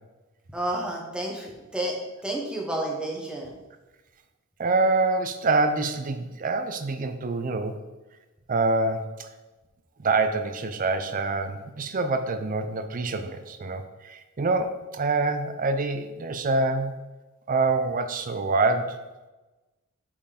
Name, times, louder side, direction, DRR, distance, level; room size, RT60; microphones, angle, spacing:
voice 1, 0.5-2.0 2.2-3.5, right 1 dB, 5° right, -1 dB, 1.1 m, -30 dB
voice 2, 4.6-7.8 8.5-9.3 10.0-16.9 17.5-19.0, right 3 dB, 40° right, 8 dB, 0.5 m, -26 dB
5.7 x 4.5 x 5.0 m, 1.1 s
head